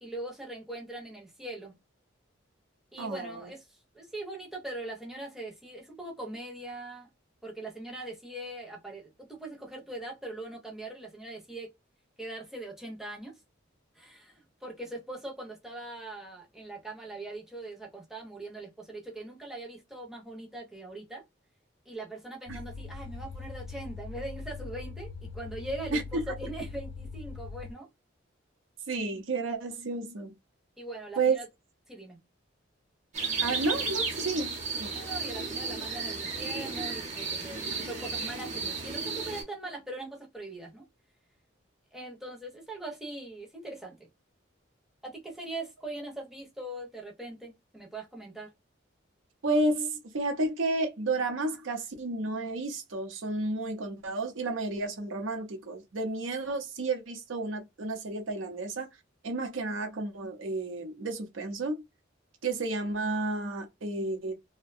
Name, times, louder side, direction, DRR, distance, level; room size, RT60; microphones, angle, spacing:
voice 1, 0.0-1.7 2.9-7.1 7.4-11.7 12.2-13.3 13.9-21.2 21.9-27.9 30.8-31.5 31.9-32.2 34.9-40.8 41.9-44.0 45.0-48.5, right 2 dB, ahead, 0.6 m, -41 dB
voice 2, 3.0-3.5 22.5-22.6 25.9-26.0 28.9-30.3 31.2-31.4 33.4-34.9 49.4-58.9 59.2-61.8 62.4-64.3, right 3 dB, 80° right, 0.6 m, -31 dB
sound 1, 22.5-27.7, left 4 dB, 70° left, 0.3 m, -41 dB
sound 2, 33.1-39.4, right 4 dB, 40° right, 0.8 m, -33 dB
2.6 x 2.1 x 2.4 m
head